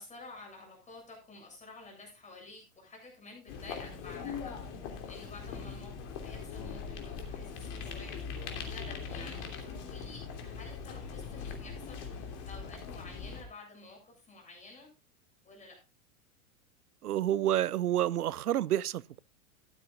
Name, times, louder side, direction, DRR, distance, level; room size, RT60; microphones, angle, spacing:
voice 1, 0.0-4.5 4.8-14.9 15.4-15.8, left 3 dB, 15° left, 7.8 m, -51 dB
sound 1, 3.5-13.4, left 6 dB, 50° left, 3.0 m, -41 dB
voice 2, 17.0-19.2, right 12 dB, 85° right, 0.6 m, -29 dB
15.0 x 12.0 x 2.5 m
hypercardioid pair, 100°, 44 cm